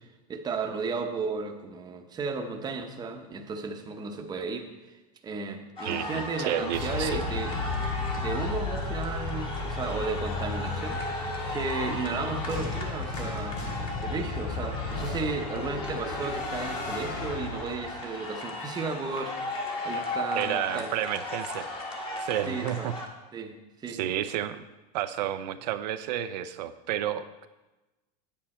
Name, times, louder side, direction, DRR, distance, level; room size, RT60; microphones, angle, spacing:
voice 1, 0.3-4.7 5.2-7.5 8.2-13.6 14.0-20.9 22.5-22.9 23.3-24.0, right 4 dB, 20° right, 4 dB, 0.9 m, -34 dB
sound 1, 5.8-23.1, left 2 dB, 25° left, 1.5 m, -36 dB
voice 2, 5.8-7.2 20.3-21.7 22.2-23.0 23.9-24.6 24.9-27.5, right 11 dB, 80° right, 10 dB, 0.6 m, -31 dB
sound 2, 6.7-18.1, left 3 dB, 80° left, 2.9 m, -34 dB
9.1 x 8.7 x 4.3 m, 1.1 s
supercardioid pair, 140°, 21 cm